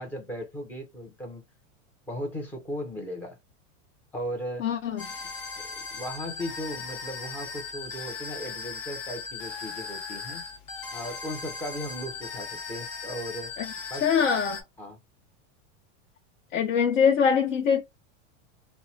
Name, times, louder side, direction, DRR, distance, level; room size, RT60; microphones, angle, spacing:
voice 1, 0.0-1.4 2.1-3.4 4.1-4.7 5.6-10.4 10.9-13.5 13.9-14.1 14.8-15.0, equal, 5° left, 0.3 m, -37 dB
voice 2, 4.6-5.0 13.6-13.7 14.0-14.6 16.5-17.8, left 7 dB, 80° left, 0.8 m, -23 dB
sound 1, 5.0-14.6, left 5 dB, 45° left, 0.9 m, -38 dB
3.0 x 2.0 x 2.6 m
supercardioid pair, 150°, 38 cm